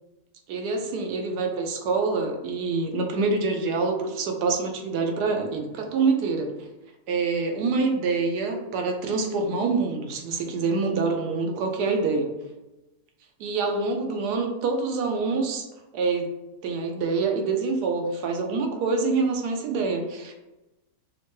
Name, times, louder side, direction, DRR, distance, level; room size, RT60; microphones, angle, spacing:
voice 1, 0.5-6.5 7.1-12.3 13.4-15.7 15.9-16.3 16.6-20.3, right 4 dB, 90° right, 3 dB, 1.2 m, -26 dB
5.4 x 2.2 x 3.0 m, 1.0 s
omnidirectional pair, 1.7 m